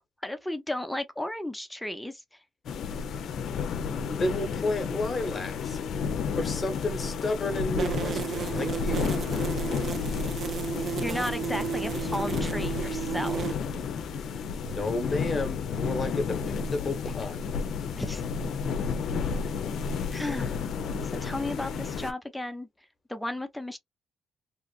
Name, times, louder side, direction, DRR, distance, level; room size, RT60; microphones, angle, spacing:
voice 1, 0.2-2.4 11.0-13.5 18.0-18.2 20.1-20.7 21.1-22.7 23.1-23.8, left 1 dB, 5° left, 0.6 m, -34 dB
sound 1, 2.6-22.1, left 5 dB, 70° left, 0.5 m, -31 dB
voice 2, 4.1-5.8 6.3-9.2 14.7-17.6, left 2 dB, 30° left, 1.0 m, -32 dB
sound 2, 7.8-13.5, right 8 dB, 50° right, 0.4 m, -33 dB
2.9 x 2.4 x 2.3 m
cardioid pair, 90°, 0 cm